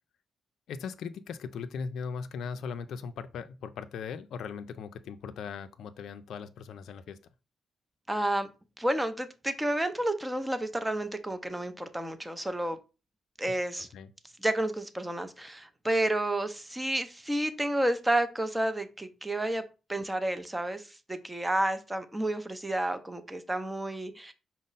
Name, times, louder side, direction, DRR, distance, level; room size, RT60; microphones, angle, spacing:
voice 1, 0.7-7.2 13.9-14.1, left 6 dB, 75° left, 0.3 m, -39 dB
voice 2, 8.1-8.5 8.8-12.8 13.4-13.9 14.4-19.6 19.9-24.3, right 1 dB, 10° right, 0.6 m, -30 dB
5.1 x 2.0 x 3.9 m
cardioid pair, 80°, 0 cm